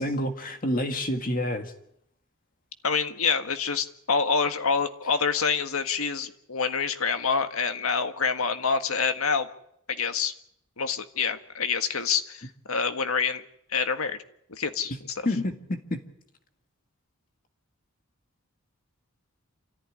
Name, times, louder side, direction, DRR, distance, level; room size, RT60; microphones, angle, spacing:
voice 1, 0.0-1.7 14.9-15.0 15.2-16.0, left 1 dB, 40° left, 6 dB, 1.8 m, -28 dB
voice 2, 2.8-9.5 10.0-10.3 10.8-13.4 13.7-14.2 14.5-14.9, left 5 dB, 80° left, 8 dB, 1.7 m, -26 dB
27.5 x 14.5 x 9.9 m, 0.75 s
head